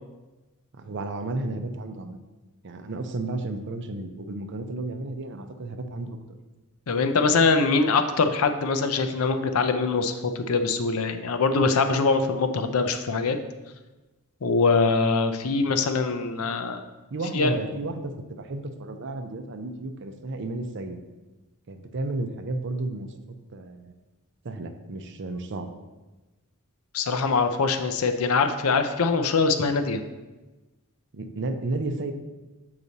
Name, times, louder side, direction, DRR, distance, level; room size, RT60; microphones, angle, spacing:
voice 1, 0.7-2.2 2.6-6.4 17.1-21.0 21.7-23.1 23.5-23.9 24.4-25.8 31.1-32.1, right 2 dB, 55° right, 7 dB, 0.6 m, -32 dB
voice 2, 6.9-13.4 14.4-16.8 17.3-17.5 26.9-30.0, left 4 dB, 70° left, 8 dB, 0.6 m, -23 dB
7.0 x 4.8 x 4.0 m, 1.1 s
head